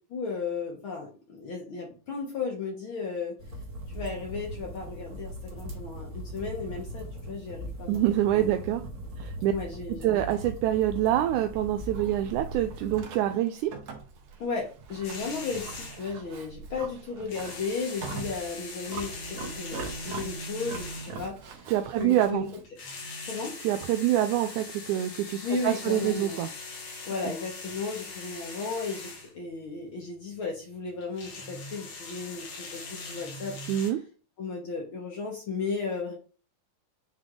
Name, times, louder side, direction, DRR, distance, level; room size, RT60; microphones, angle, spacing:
voice 1, 0.1-3.4 3.9-8.0 8.3-8.5 9.5-10.1 14.4-21.7 22.0-22.5 23.2-23.6 25.4-26.5 27.0-33.6 33.8-34.0 34.4-36.1, left 4 dB, 55° left, 0 dB, 1.7 m, -35 dB
sound 1, 3.4-13.0, equal, 40° right, 1.4 m, -40 dB
voice 2, 7.9-8.8 9.2-9.5 10.0-13.7 21.7-22.4 23.6-26.5 33.7-34.0, right 12 dB, 80° right, 6 dB, 2.0 m, -26 dB
Livestock farm animals working animals, 11.0-22.7, right 5 dB, 60° right, 2.1 m, -43 dB
sound 2, 15.0-16.1 17.2-21.4 22.6-29.3 31.0-33.9, left 3 dB, 85° left, 3.4 m, -41 dB
8.1 x 3.5 x 3.7 m, 0.36 s
omnidirectional pair, 3.6 m